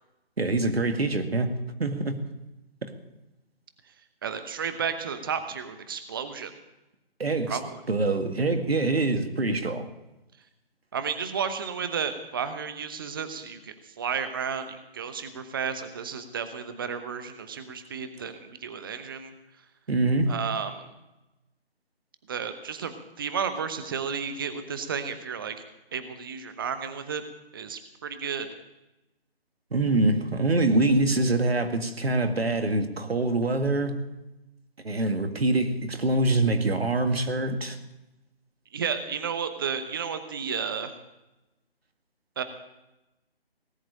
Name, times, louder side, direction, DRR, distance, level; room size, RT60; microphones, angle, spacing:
voice 1, 0.4-1.5 1.8-2.2 2.8-2.9 7.2-7.6 7.9-9.9 19.9-20.4 29.7-34.0 34.8-37.8, right 2 dB, 75° right, 2.1 m, -25 dB
voice 2, 4.2-6.6 7.5-7.8 10.9-19.3 20.3-20.9 22.3-25.6 25.9-27.2 27.5-28.5 38.7-40.9 42.4-42.5, right 6 dB, 20° right, 0.9 m, -32 dB
18.5 x 7.9 x 8.7 m
figure-of-eight pair, 155°, 31 cm